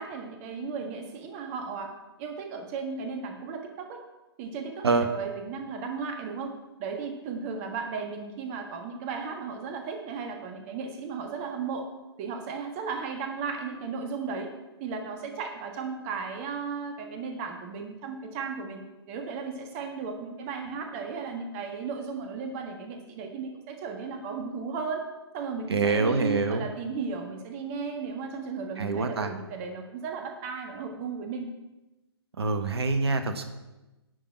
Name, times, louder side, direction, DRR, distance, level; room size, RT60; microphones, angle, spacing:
voice 1, 0.0-1.9 2.2-4.0 4.4-11.9 12.2-14.5 14.8-18.8 19.1-25.1 25.3-31.5, right 5 dB, 30° right, 4 dB, 1.5 m, -35 dB
voice 2, 25.7-26.6 28.8-29.3 32.4-33.5, right 3 dB, 70° right, 8 dB, 1.2 m, -25 dB
11.5 x 5.5 x 8.5 m, 1.1 s
figure-of-eight pair, 130°, 14 cm